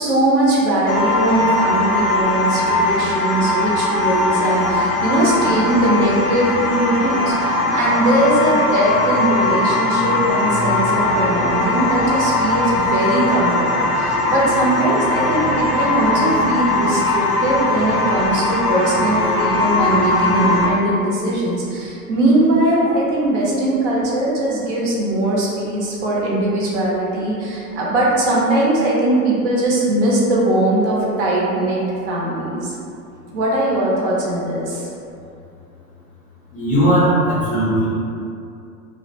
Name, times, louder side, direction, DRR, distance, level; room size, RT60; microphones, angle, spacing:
voice 1, 0.0-32.8 33.3-34.8, right 1 dB, 50° right, -5 dB, 0.7 m, -20 dB
sound 1, 0.9-20.7, left 2 dB, 85° left, 0.5 m, -20 dB
voice 2, 36.5-37.9, right 1 dB, 20° left, -9 dB, 0.5 m, -17 dB
2.5 x 2.0 x 2.8 m, 2.5 s
figure-of-eight pair, 95°, 45 cm